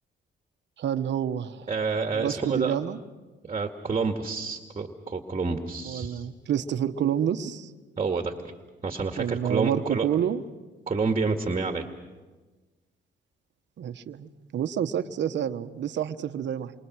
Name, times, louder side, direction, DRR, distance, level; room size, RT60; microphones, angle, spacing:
voice 1, 0.8-1.7 2.1-3.0 5.8-7.7 9.2-10.4 13.8-16.7, right 9 dB, 65° right, 9 dB, 1.3 m, -28 dB
voice 2, 1.7-2.8 3.5-6.3 8.0-8.3 8.8-10.1 10.9-11.8, right 4 dB, 30° right, 5 dB, 2.1 m, -28 dB
28.5 x 24.5 x 6.3 m, 1.3 s
cardioid pair, 90°, 20 cm